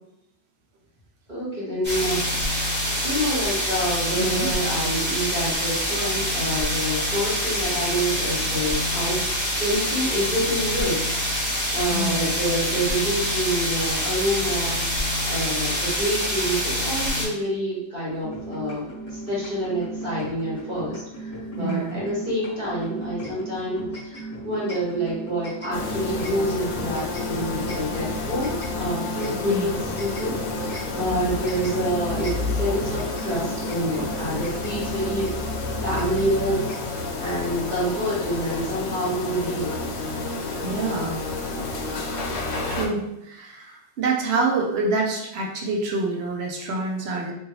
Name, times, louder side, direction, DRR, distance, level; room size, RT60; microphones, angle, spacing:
voice 1, 1.3-2.3 3.0-11.4 11.7-14.8 15.3-18.8 19.1-35.5 35.8-36.6 37.2-39.7, equal, 45° right, -8 dB, 1.3 m, -27 dB
sound 1, 1.8-17.3, equal, 10° right, 1.0 m, -26 dB
voice 2, 4.1-4.5 11.9-12.3 21.6-22.0 29.4-29.8 31.1-31.3 34.0-34.1 40.6-41.2 42.7-47.3, right 3 dB, 65° right, 0 dB, 0.8 m, -27 dB
sound 2, 18.2-36.8, equal, 15° left, 0.9 m, -35 dB
sound 3, 25.7-42.9, left 3 dB, 70° left, 0.8 m, -30 dB
2.7 x 2.6 x 2.9 m, 0.87 s
omnidirectional pair, 1.2 m